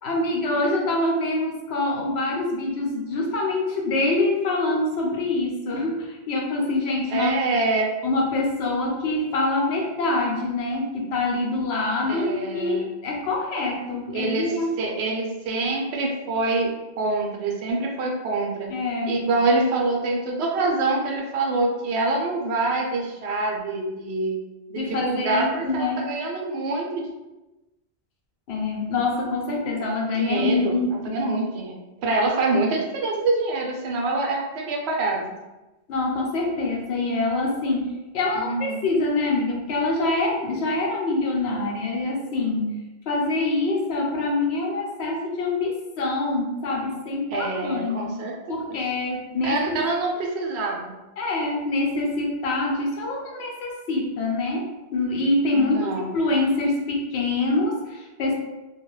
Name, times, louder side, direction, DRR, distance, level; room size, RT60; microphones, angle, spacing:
voice 1, 0.0-7.4 8.0-14.7 18.7-19.2 24.8-26.0 28.5-31.1 35.9-42.7 43.1-48.1 48.5-49.8 51.2-58.3, left 2 dB, 80° left, -1 dB, 0.9 m, -25 dB
voice 2, 7.1-7.9 12.1-12.9 14.1-18.7 19.1-24.4 24.7-27.1 30.2-35.2 38.4-38.8 47.3-48.6 49.4-50.9 55.5-56.1, right 3 dB, 80° right, 0 dB, 0.9 m, -25 dB
2.4 x 2.2 x 3.0 m, 1.1 s
omnidirectional pair, 1.1 m